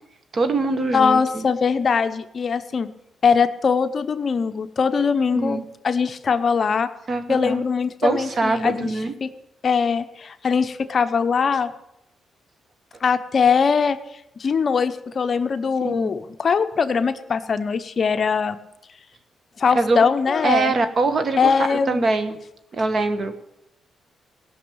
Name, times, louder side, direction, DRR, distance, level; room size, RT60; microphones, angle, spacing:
voice 1, 0.3-1.4 5.3-5.6 7.1-7.6 8.0-9.1 15.8-16.1 19.7-20.0 20.4-22.4 22.7-23.3, right 3 dB, 45° right, 9 dB, 1.3 m, -23 dB
voice 2, 0.9-2.9 3.2-6.9 7.3-8.9 9.2-9.3 9.6-11.7 13.0-14.0 14.4-18.6 19.6-20.7 21.4-22.0, left 5 dB, 45° left, 10 dB, 0.7 m, -21 dB
17.0 x 6.2 x 8.7 m, 0.84 s
cardioid pair, 105°, 0 cm